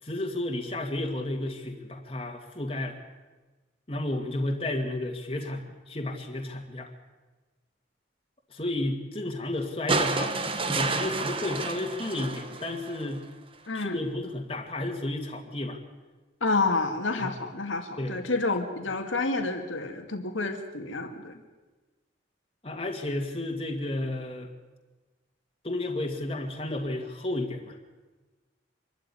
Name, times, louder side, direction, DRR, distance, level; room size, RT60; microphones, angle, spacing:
voice 1, 0.0-2.9 3.9-6.9 8.5-10.4 10.7-13.2 13.7-15.8 17.2-17.4 18.0-18.2 22.6-24.5 25.6-27.8, left 1 dB, 30° left, 2 dB, 2.1 m, -32 dB
sound 1, 9.9-13.2 14.5-14.6, right 3 dB, 30° right, 1.4 m, -30 dB
voice 2, 16.4-21.4, left 3 dB, 85° left, 5 dB, 2.2 m, -29 dB
26.0 x 13.0 x 9.9 m, 1.2 s
head